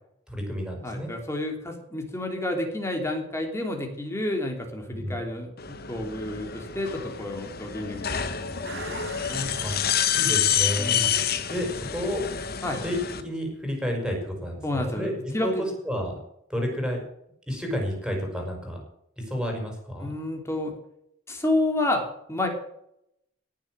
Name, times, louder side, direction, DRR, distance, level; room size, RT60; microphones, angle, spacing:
voice 1, 0.3-1.1 4.9-5.2 9.6-9.7 10.1-11.1 11.5-12.2 12.8-13.0 13.2-16.1 16.5-17.1 17.5-18.8 19.2-20.1, equal, 5° right, 1 dB, 5.4 m, -30 dB
voice 2, 0.8-9.5 10.8-11.1 12.6-12.8 14.6-15.7 20.0-20.8 21.3-22.0 22.3-22.5, left 1 dB, 15° left, 2 dB, 3.3 m, -30 dB
sound 1, 5.6-13.2, left 9 dB, 50° left, 1.4 m, -28 dB
sound 2, 8.6-11.5 11.9-12.0, right 4 dB, 55° right, 2.1 m, -43 dB
18.0 x 7.5 x 7.6 m, 0.76 s
head